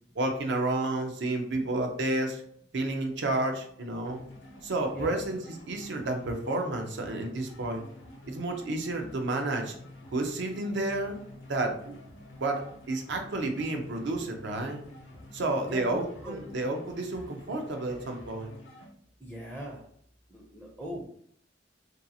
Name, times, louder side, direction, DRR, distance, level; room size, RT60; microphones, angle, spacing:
voice 1, 0.2-2.4 2.7-4.2 4.6-7.8 8.3-9.7 10.1-11.2 11.5-11.9 12.4-14.8 15.3-18.5, right 2 dB, 70° right, 4 dB, 0.5 m, -31 dB
sound 1, 4.0-18.9, left 1 dB, 85° left, 0.7 m, -49 dB
voice 2, 4.9-5.2 15.6-16.4 19.2-19.9 20.3-21.1, equal, 5° right, -4 dB, 0.4 m, -40 dB
2.7 x 2.3 x 2.7 m, 0.64 s
head